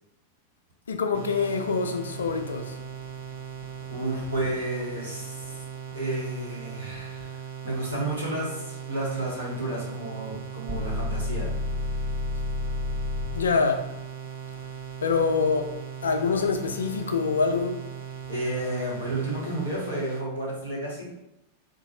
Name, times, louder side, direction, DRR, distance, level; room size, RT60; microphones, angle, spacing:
voice 1, 0.9-2.8 13.3-13.9 15.0-15.7 16.0-17.8, left 5 dB, 70° left, 0.3 m, -25 dB
sound 1, 1.1-20.3, right 7 dB, 60° right, 0.5 m, -39 dB
voice 2, 3.9-5.5 5.9-7.3 7.6-11.5 18.3-21.1, right 1 dB, 80° right, 1.3 m, -31 dB
sound 2, 10.7-13.5, left 2 dB, 20° right, 0.7 m, -29 dB
3.8 x 2.4 x 3.0 m
figure-of-eight pair, 90°, 0 cm